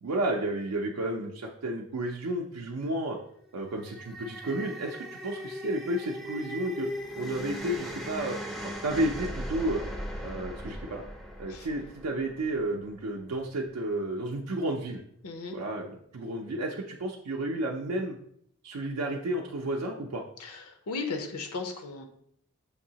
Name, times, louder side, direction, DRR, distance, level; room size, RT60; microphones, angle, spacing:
voice 1, 0.0-3.2 3.5-6.9 7.2-8.4 8.6-9.8 10.2-11.0 11.4-15.0 15.5-18.2 18.6-20.2, right 1 dB, 75° right, 0 dB, 0.5 m, -32 dB
sound 1, 3.6-12.9, equal, ahead, 0.4 m, -39 dB
voice 2, 15.2-15.6 20.4-22.1, left 4 dB, 80° left, 5 dB, 0.6 m, -36 dB
6.4 x 2.7 x 2.8 m, 0.69 s
head